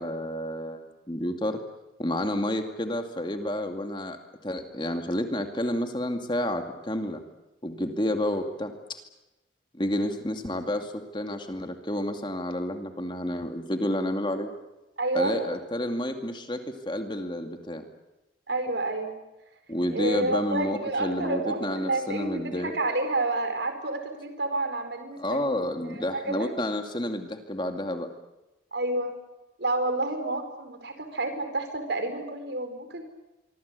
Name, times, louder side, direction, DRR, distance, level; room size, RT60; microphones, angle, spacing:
voice 1, 0.0-1.6 2.0-7.2 7.6-9.0 9.7-14.5 15.1-17.8 19.7-22.7 25.2-28.1, left 1 dB, 25° left, 5 dB, 2.3 m, -30 dB
voice 2, 15.0-15.3 18.5-19.2 19.9-25.6 25.9-26.2 28.7-29.1 29.6-33.1, right 2 dB, 70° right, 8 dB, 4.7 m, -29 dB
25.0 x 25.0 x 8.3 m, 1.0 s
head